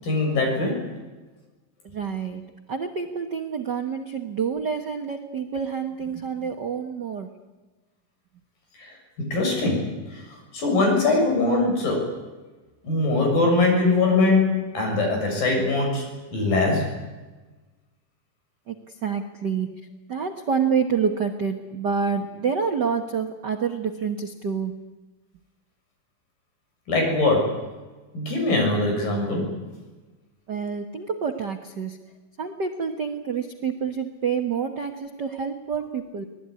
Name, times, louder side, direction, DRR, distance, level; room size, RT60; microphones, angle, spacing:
voice 1, 0.0-0.8 8.8-9.9 10.1-10.2 10.5-12.1 12.8-16.0 16.3-16.8 26.9-27.6 28.1-29.5, left 2 dB, 90° left, 1 dB, 8.8 m, -22 dB
voice 2, 1.8-2.4 2.7-7.3 18.7-19.7 20.1-24.9 30.5-32.0 32.4-36.2, right 6 dB, 65° right, 5 dB, 1.0 m, -28 dB
24.5 x 19.0 x 9.7 m, 1.2 s
omnidirectional pair, 3.9 m